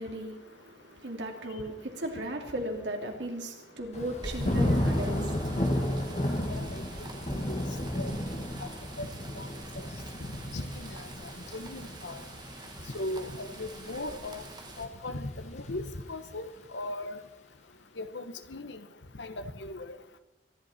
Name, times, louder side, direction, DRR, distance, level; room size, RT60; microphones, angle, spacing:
voice 1, 0.0-6.3, right 1 dB, 80° right, 2.7 m, -37 dB
Thunder / Rain, 3.9-14.9 15.3-15.7, left 1 dB, 40° left, 1.8 m, -33 dB
sound 1, 4.2-14.9, right 2 dB, 25° right, 1.5 m, -44 dB
voice 2, 6.5-6.8 7.3-7.6 7.9-8.1 8.6-8.7 9.0-9.1 9.3-9.5 10.5-11.0 11.5-12.2 12.9-14.4 14.8-17.2 18.0-18.8 19.2-20.0, left 2 dB, 80° left, 1.2 m, -38 dB
23.5 x 11.5 x 4.4 m
head